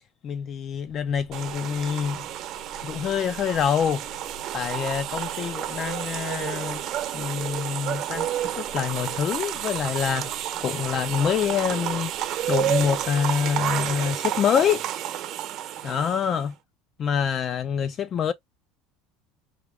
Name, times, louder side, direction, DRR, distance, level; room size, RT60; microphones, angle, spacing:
voice 1, 0.2-2.2 2.8-4.0 4.5-6.8 7.1-10.3 10.6-12.1 12.5-14.8 15.8-16.5 17.0-18.3, left 8 dB, 40° left, 0.4 m, -26 dB
sound 1, 0.9-14.1, right 1 dB, 90° left, 1.6 m, -50 dB
sound 2, 1.3-16.5, right 12 dB, 50° right, 0.9 m, -30 dB
4.8 x 2.3 x 3.4 m
supercardioid pair, 125°, 0 cm